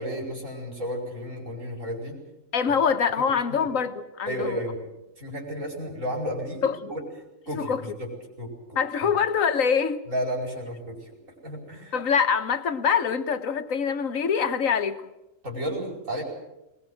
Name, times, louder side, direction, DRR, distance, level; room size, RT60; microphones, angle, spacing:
voice 1, 0.0-2.2 2.7-2.8 3.6-3.7 4.3-4.8 5.2-6.6 6.9-7.0 7.5-9.1 10.1-11.1 11.4-11.9 15.4-16.2, equal, 70° right, 5.3 m, -32 dB
voice 2, 2.5-4.6 6.6-6.9 7.5-7.8 8.8-10.0 11.9-15.0, left 6 dB, 80° left, 1.6 m, -24 dB
21.0 x 20.0 x 7.8 m
omnidirectional pair, 1.4 m